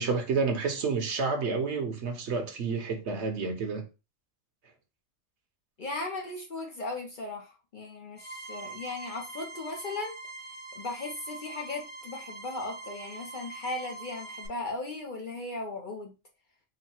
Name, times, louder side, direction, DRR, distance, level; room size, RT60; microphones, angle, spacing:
voice 1, 0.0-3.8, right 4 dB, 65° right, 1.1 m, -29 dB
voice 2, 5.8-10.2 10.5-16.1, left 2 dB, 50° left, 0.7 m, -37 dB
sound 1, 8.2-14.5, right 3 dB, 25° left, 0.9 m, -44 dB
4.0 x 2.1 x 4.2 m
omnidirectional pair, 1.3 m